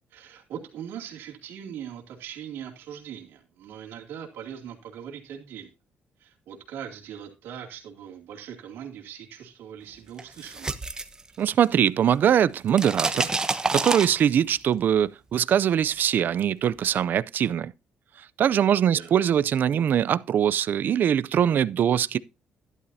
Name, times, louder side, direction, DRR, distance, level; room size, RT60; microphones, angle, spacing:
voice 1, 0.1-5.7 6.2-10.8 18.9-19.1, right 9 dB, 85° right, 2.5 m, -40 dB
sound 1, 10.2-11.9 12.1-14.6, right 3 dB, 20° right, 1.0 m, -28 dB
voice 2, 11.4-13.3 13.7-17.7 18.4-22.2, right 9 dB, 55° right, 0.5 m, -22 dB
12.0 x 10.5 x 2.7 m
cardioid pair, 110°, 4 cm